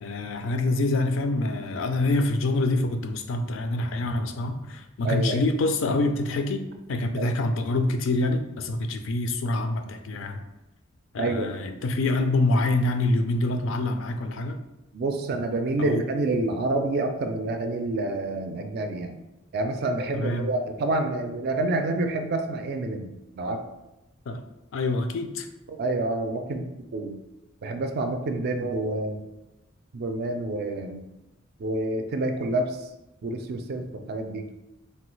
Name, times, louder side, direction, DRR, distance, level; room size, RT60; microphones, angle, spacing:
voice 1, 0.0-10.4 11.1-14.6 15.8-16.0 20.1-20.5 24.3-24.4 24.7-25.5, left 2 dB, 70° left, 6 dB, 0.4 m, -26 dB
voice 2, 5.0-5.4 7.2-7.4 10.2-10.3 11.2-11.5 14.9-19.2 19.5-23.6 25.7-26.6 26.9-27.2 27.6-29.2 29.9-31.1 31.6-32.9 33.2-34.5, right 2 dB, 55° right, 6 dB, 0.4 m, -28 dB
3.1 x 2.2 x 3.1 m, 0.97 s
head